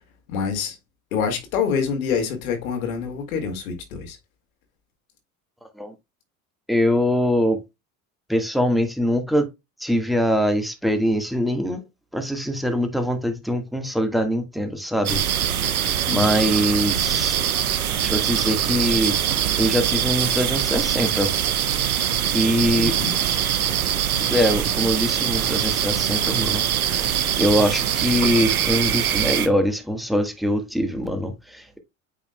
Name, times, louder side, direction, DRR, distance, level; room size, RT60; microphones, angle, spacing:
voice 1, 0.3-0.8 1.1-4.2 16.1-16.3 22.8-23.1, left 6 dB, 75° left, 2.1 m, -26 dB
voice 2, 6.7-7.6 8.3-9.5 9.8-11.8 12.1-15.2 15.7-17.4 18.0-19.2 19.6-21.3 22.3-22.9 24.3-31.8, equal, ahead, 1.5 m, -23 dB
sound 1, 15.0-29.5, right 9 dB, 85° right, 0.9 m, -23 dB
8.4 x 5.0 x 2.2 m
hypercardioid pair, 70°, 42 cm